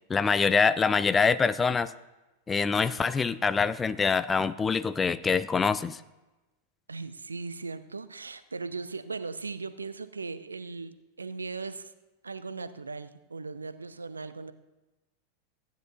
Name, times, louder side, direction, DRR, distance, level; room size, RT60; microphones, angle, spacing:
voice 1, 0.1-1.9 2.5-6.0, left 5 dB, 15° left, 15 dB, 0.3 m, -25 dB
voice 2, 6.9-11.9 12.2-14.5, right 4 dB, 75° right, 13 dB, 0.5 m, -38 dB
14.5 x 9.9 x 2.7 m, 1.1 s
figure-of-eight pair, 90°, 0 cm